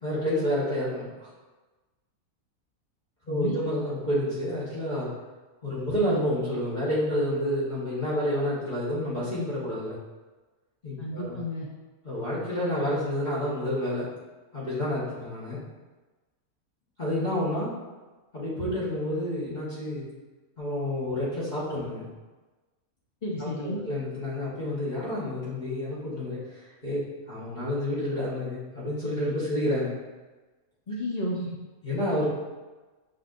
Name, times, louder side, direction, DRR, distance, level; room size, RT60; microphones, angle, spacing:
voice 1, 0.0-1.3 3.3-5.1 5.6-10.0 10.8-11.4 12.0-14.1 14.5-15.6 17.0-17.7 18.3-20.1 20.6-22.1 23.4-27.0 27.3-30.0 31.8-32.3, left 1 dB, 35° left, -10 dB, 1.3 m, -29 dB
voice 2, 3.3-3.6 11.0-11.7 23.2-23.8 30.9-31.6, left 1 dB, 55° left, -3 dB, 0.4 m, -32 dB
6.4 x 3.4 x 2.5 m, 1.2 s
omnidirectional pair, 1.5 m